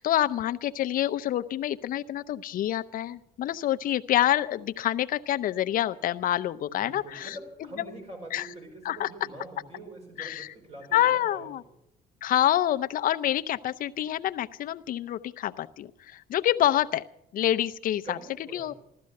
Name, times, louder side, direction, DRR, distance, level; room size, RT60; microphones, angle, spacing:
voice 1, 0.0-7.4 7.8-7.9 8.3-8.5 8.8-9.1 10.2-10.5 10.9-11.6 12.2-17.0 17.3-18.2 18.5-18.7, left 12 dB, 55° left, 11 dB, 0.6 m, -27 dB
voice 2, 6.7-11.7 18.0-18.8, right 2 dB, 40° right, 2 dB, 5.2 m, -44 dB
15.0 x 13.0 x 6.5 m, 0.75 s
cardioid pair, 110°, 17 cm